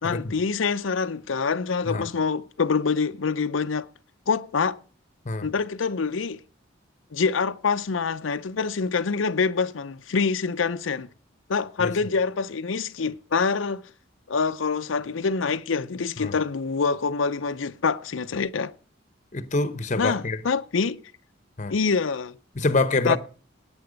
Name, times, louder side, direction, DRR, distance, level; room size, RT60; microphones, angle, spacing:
voice 1, 0.0-3.9 4.3-4.8 5.4-6.4 7.1-11.1 11.5-13.8 14.3-18.7 20.0-21.0 21.7-22.3 23.0-23.2, left 5 dB, 90° left, 0.6 m, -25 dB
voice 2, 19.3-20.4 21.6-21.7 22.6-23.2, left 2 dB, 40° left, 0.9 m, -25 dB
17.0 x 8.9 x 5.1 m
head